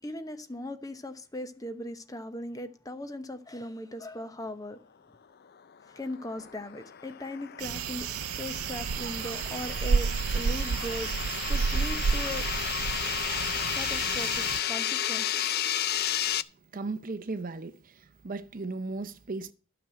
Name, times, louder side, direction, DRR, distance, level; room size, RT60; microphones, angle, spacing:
voice 1, 0.0-4.8 5.9-8.1 8.4-12.8 13.7-15.6, left 1 dB, 15° left, 0.9 m, -39 dB
sound 1, 6.0-16.4, left 10 dB, 45° left, 0.5 m, -33 dB
sound 2, 7.6-14.6, right 6 dB, 85° right, 0.5 m, -30 dB
voice 2, 16.7-17.9 18.2-19.5, right 3 dB, 40° right, 0.6 m, -36 dB
12.5 x 6.0 x 7.7 m
head